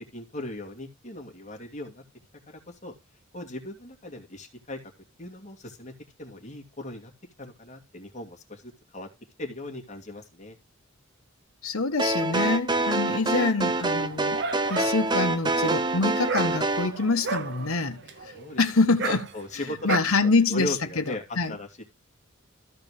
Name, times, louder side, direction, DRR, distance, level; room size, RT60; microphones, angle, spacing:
voice 1, 0.1-2.0 2.5-2.9 3.3-4.8 5.2-5.9 6.2-7.1 7.4-9.1 9.4-10.6 18.3-18.6 19.0-21.2 21.5-21.8, left 1 dB, 35° left, 2.5 m, -38 dB
voice 2, 11.6-14.4 14.7-18.0 18.6-19.3 19.8-21.5, left 3 dB, 80° left, 1.2 m, -25 dB
sound 1, 12.0-16.9, right 2 dB, 20° right, 0.6 m, -26 dB
Dog, 13.9-20.0, right 4 dB, 55° right, 0.8 m, -34 dB
14.0 x 4.8 x 4.9 m
head